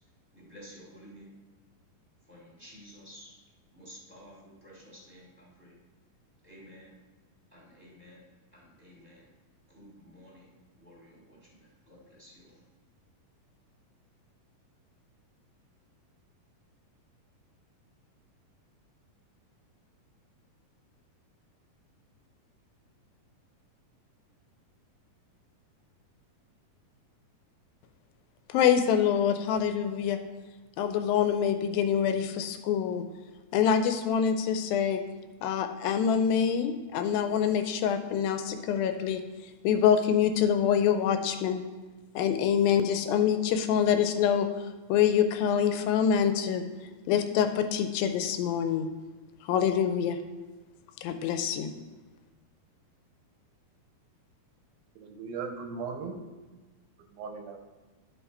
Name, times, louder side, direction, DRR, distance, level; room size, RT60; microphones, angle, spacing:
voice 1, 0.3-1.3 2.3-3.4 3.7-5.8 6.4-7.0 7.5-8.2 8.5-9.3 9.7-12.6, equal, 5° right, -6 dB, 1.8 m, -52 dB
voice 2, 28.5-30.2 30.8-33.0 33.5-35.0 35.4-39.2 39.6-41.6 42.2-46.6 47.1-48.9 49.4-50.2 51.0-51.7, left 8 dB, 85° left, 8 dB, 2.3 m, -25 dB
voice 3, 55.0-56.2 57.1-57.6, right 5 dB, 85° right, 5 dB, 2.6 m, -37 dB
11.5 x 5.7 x 4.2 m, 1.2 s
omnidirectional pair, 4.2 m